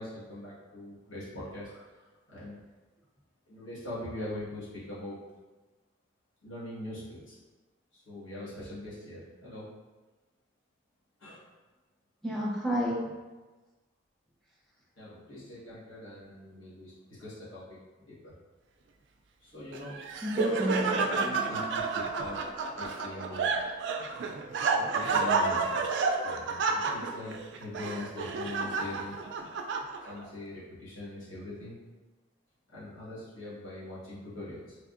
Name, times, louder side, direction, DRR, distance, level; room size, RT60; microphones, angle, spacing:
voice 1, 0.0-1.7 2.3-2.5 3.5-5.2 6.4-7.4 7.9-9.7 11.2-11.5 15.0-16.9 17.2-18.3 19.4-20.0 20.4-20.5 21.1-22.4 22.7-23.5 24.7-29.2 30.0-31.8 32.7-34.8, left 1 dB, 80° left, -10 dB, 1.5 m, -42 dB
voice 2, 12.2-13.0 20.2-21.6, equal, ahead, -6 dB, 0.6 m, -31 dB
Laughter, 19.7-30.3, right 4 dB, 65° right, 0.3 m, -30 dB
3.4 x 3.3 x 2.5 m, 1.2 s
head